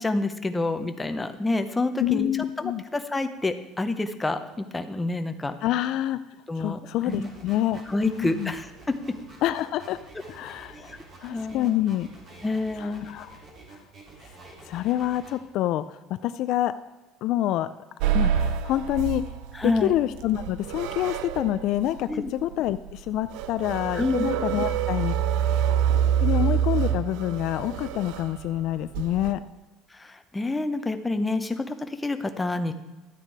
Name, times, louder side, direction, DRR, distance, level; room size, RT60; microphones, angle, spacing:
voice 1, 0.0-2.3 2.6-5.6 6.5-6.8 7.1-7.3 7.9-8.9 10.4-10.5 10.8-11.8 12.4-13.0 19.5-19.9 22.1-22.3 23.9-24.3 29.9-32.7, left 2 dB, 10° left, 8 dB, 0.8 m, -28 dB
voice 2, 2.0-2.8 5.6-6.2 6.6-8.5 9.4-10.0 10.3-10.9 11.2-12.1 12.8-13.4 13.7-13.8 14.7-16.7 17.2-17.7 18.1-19.2 19.6-25.1 26.2-29.4, left 13 dB, 60° left, 12 dB, 0.4 m, -27 dB
sound 1, 7.1-15.3, right 3 dB, 40° right, 3.4 m, -48 dB
sound 2, 18.0-29.3, right 9 dB, 75° right, 0.6 m, -27 dB
12.5 x 9.0 x 4.7 m, 1.1 s
cardioid pair, 135°, 0 cm